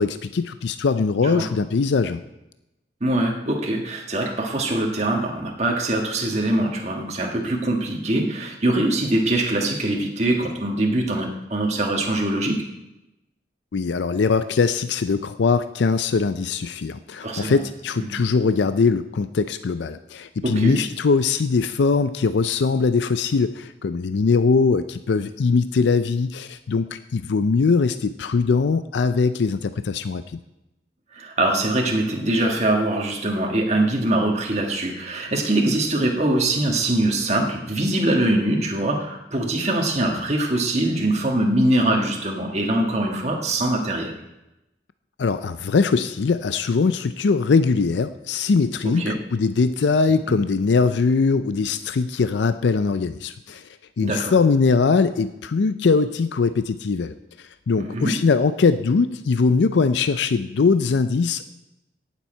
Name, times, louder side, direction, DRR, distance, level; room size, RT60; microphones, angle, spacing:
voice 1, 0.0-2.2 13.7-30.4 45.2-53.7 54.0-61.5, left 4 dB, 75° left, 11 dB, 0.4 m, -21 dB
voice 2, 3.0-12.6 17.2-17.6 18.0-18.2 20.4-20.8 31.1-44.1 49.0-49.1 50.3-50.4 54.0-54.3 57.8-58.2, right 1 dB, 35° right, 0 dB, 1.5 m, -23 dB
18.0 x 7.4 x 4.4 m, 0.93 s
head